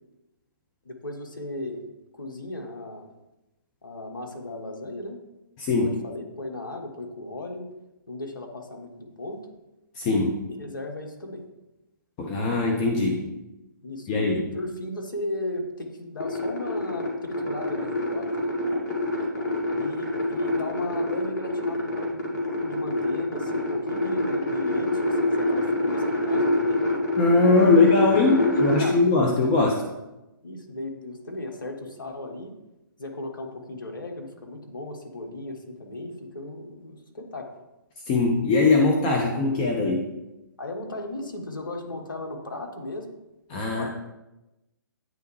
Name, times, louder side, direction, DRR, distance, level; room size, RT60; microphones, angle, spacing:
voice 1, 0.8-1.8 2.1-3.1 3.8-5.2 5.8-7.7 8.1-9.4 10.5-11.4 13.8-18.5 19.7-26.8 28.5-29.0 30.4-32.5 33.0-37.5 40.6-43.1 43.5-43.9, left 2 dB, 70° left, 2 dB, 1.3 m, -36 dB
voice 2, 5.6-6.0 9.9-10.4 12.2-13.3 14.1-14.5 27.2-29.7 38.1-40.0 43.5-43.9, left 3 dB, 25° left, 1 dB, 0.7 m, -21 dB
sound 1, 16.2-28.9, left 1 dB, 55° left, 2.0 m, -26 dB
9.0 x 3.4 x 3.2 m, 0.98 s
figure-of-eight pair, 130°, 11 cm